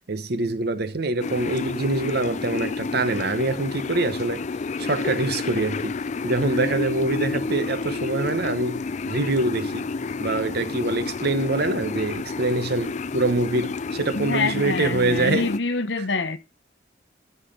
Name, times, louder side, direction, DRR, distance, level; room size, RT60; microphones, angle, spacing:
voice 1, 0.1-4.4 4.8-6.0 6.2-9.9 10.2-15.5, right 2 dB, 60° right, 1.0 m, -25 dB
sound 1, 1.2-15.6, left 4 dB, 40° left, 0.4 m, -30 dB
voice 2, 14.1-16.4, left 3 dB, 75° left, 1.0 m, -26 dB
13.0 x 5.7 x 3.8 m
head